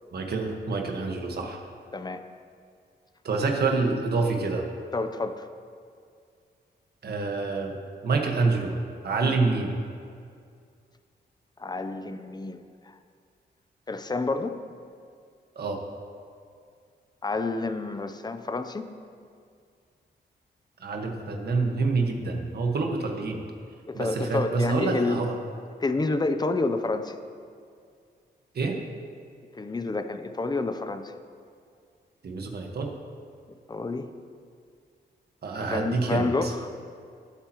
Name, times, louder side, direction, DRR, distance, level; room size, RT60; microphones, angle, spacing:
voice 1, 0.1-1.6 3.2-4.7 7.0-7.7 8.0-8.7 9.0-9.7 15.5-15.8 20.8-23.4 23.9-25.3 28.5-28.8 32.2-32.9 35.4-36.5, right 3 dB, 65° right, 2 dB, 1.5 m, -27 dB
voice 2, 1.9-2.2 3.6-3.7 4.9-5.5 9.2-9.4 11.6-12.9 13.9-14.6 17.2-18.8 23.9-25.2 25.8-27.2 29.5-31.1 33.7-34.1 35.6-36.7, left 3 dB, 25° left, 9 dB, 0.7 m, -29 dB
20.0 x 8.5 x 3.0 m, 2.3 s
cardioid pair, 95°, 18 cm